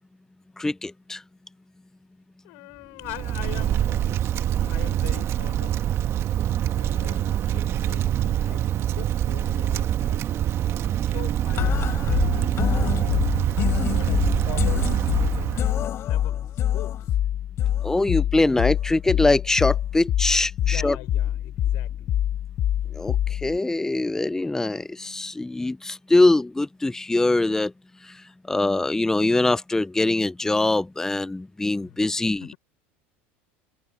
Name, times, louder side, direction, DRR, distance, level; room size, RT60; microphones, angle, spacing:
voice 1, 0.6-1.2 17.8-21.0 23.0-23.1 23.4-27.7 28.5-32.5, left 2 dB, 10° left, 0.5 m, -23 dB
voice 2, 2.4-4.2 4.5-5.9 6.7-10.3 11.0-13.1 13.9-17.2 20.6-22.2 31.8-32.1 32.4-32.6, left 30 dB, 65° left, 5.0 m, -42 dB
Wind, 3.0-15.9, right 11 dB, 45° right, 1.5 m, -25 dB
sound 1, 11.6-23.6, left 11 dB, 45° left, 1.3 m, -25 dB
hypercardioid pair, 90°, 6 cm